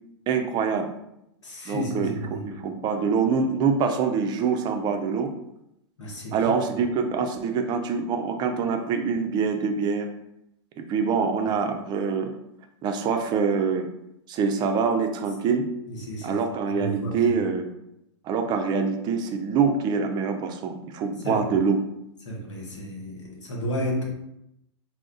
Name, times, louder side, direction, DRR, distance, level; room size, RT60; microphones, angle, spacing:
voice 1, 0.3-0.9 1.7-5.3 6.3-10.1 10.8-12.3 12.8-13.9 14.3-15.7 16.2-17.7 18.2-21.8, right 5 dB, 30° right, 5 dB, 0.4 m, -25 dB
voice 2, 1.4-2.4 6.0-6.5 15.9-16.4 16.8-17.3 21.2-21.4 22.3-24.1, equal, 80° left, -1 dB, 1.0 m, -32 dB
2.3 x 2.0 x 3.8 m, 0.82 s
hypercardioid pair, 105°, 15 cm